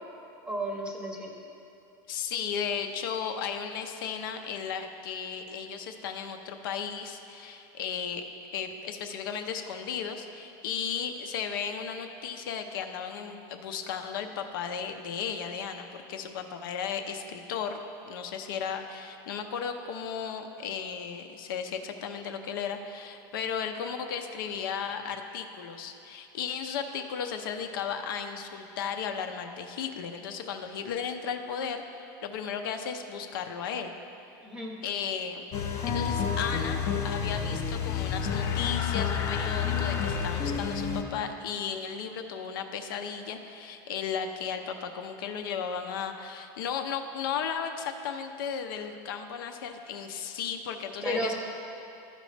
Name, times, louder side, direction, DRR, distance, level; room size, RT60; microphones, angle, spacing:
voice 1, 0.4-1.3 34.4-34.7 51.0-51.3, right 1 dB, 10° right, -1 dB, 0.7 m, -32 dB
voice 2, 2.1-8.2 8.5-31.8 32.2-34.0 34.8-35.4 35.8-51.3, left 7 dB, 85° left, 5 dB, 0.6 m, -35 dB
sound 1, 35.5-41.0, left 7 dB, 25° left, 0.4 m, -29 dB
13.5 x 5.2 x 3.3 m, 2.8 s
supercardioid pair, 180°, 11 cm